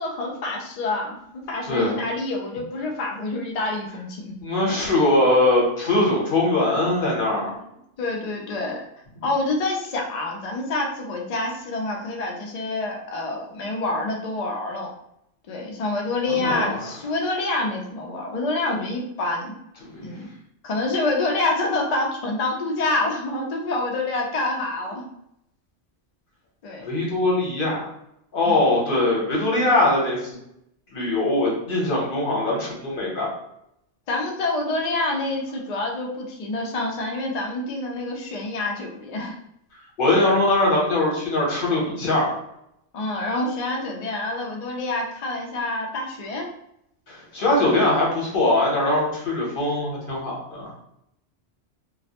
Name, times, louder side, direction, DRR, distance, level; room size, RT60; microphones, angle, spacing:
voice 1, 0.0-4.4 7.4-7.5 8.0-8.8 9.2-14.9 15.5-19.6 20.0-20.3 20.6-25.1 26.6-26.9 28.5-28.6 34.1-39.4 42.9-46.5, left 2 dB, 75° left, 0 dB, 0.3 m, -27 dB
voice 2, 1.7-2.0 4.4-7.6 16.3-16.8 19.9-20.0 26.8-27.9 28.3-30.2 30.9-33.3 40.0-42.3 47.1-50.7, left 2 dB, 50° left, -3 dB, 1.0 m, -21 dB
2.3 x 2.0 x 2.7 m, 0.78 s
omnidirectional pair, 1.2 m